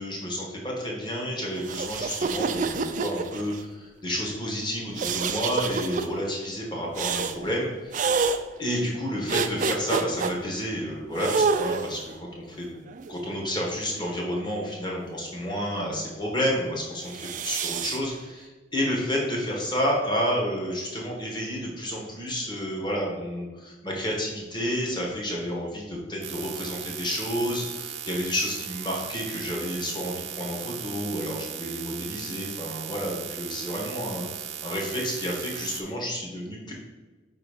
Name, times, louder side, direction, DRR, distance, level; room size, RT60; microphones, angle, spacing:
voice 1, 0.0-8.2 8.6-12.7 13.1-36.7, equal, 25° left, -2 dB, 1.1 m, -30 dB
sound 1, 1.6-3.6 5.0-6.1 7.0-7.4 7.9-8.4 9.3-10.3 11.2-12.1 12.9-14.0 17.0-18.0, right 5 dB, 40° right, 0.3 m, -28 dB
sound 2, 26.2-35.8, right 9 dB, 80° right, 0.7 m, -37 dB
5.0 x 3.9 x 4.9 m, 1.3 s
head